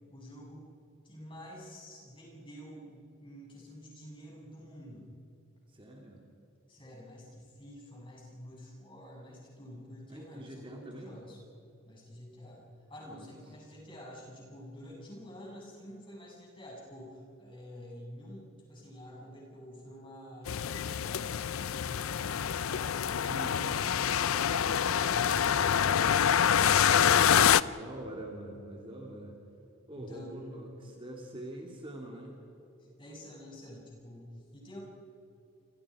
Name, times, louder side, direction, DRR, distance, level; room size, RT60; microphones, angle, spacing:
voice 1, 0.1-0.7 1.0-5.1 6.7-11.4 11.9-23.0 23.3-25.3 29.9-30.7 32.8-34.8, equal, 25° left, -3 dB, 7.5 m, -48 dB
voice 2, 5.7-6.2 10.1-11.2 13.1-13.3 23.3-23.8 25.1-26.6 27.1-29.4 29.9-32.4, right 1 dB, 25° right, 0 dB, 2.8 m, -45 dB
sound 1, 20.5-27.6, left 8 dB, 80° left, 0.5 m, -26 dB
29.0 x 27.0 x 5.0 m, 2.8 s
head